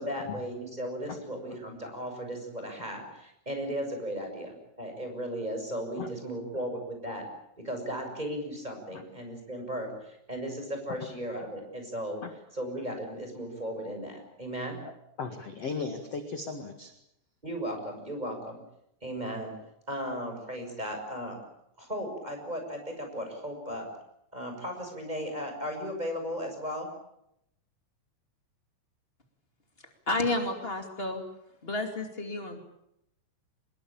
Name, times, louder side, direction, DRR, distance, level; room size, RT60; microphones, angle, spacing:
voice 1, 0.0-7.3 7.6-12.2 12.5-14.8 17.4-18.6 19.0-19.5 19.9-21.4 21.8-23.9 24.3-26.9, equal, 10° right, 4 dB, 6.4 m, -36 dB
voice 2, 15.2-16.9, left 4 dB, 55° left, 6 dB, 1.8 m, -36 dB
voice 3, 30.1-31.2 31.6-32.6, left 2 dB, 75° left, 4 dB, 0.5 m, -31 dB
25.5 x 21.5 x 8.7 m, 0.80 s
omnidirectional pair, 5.9 m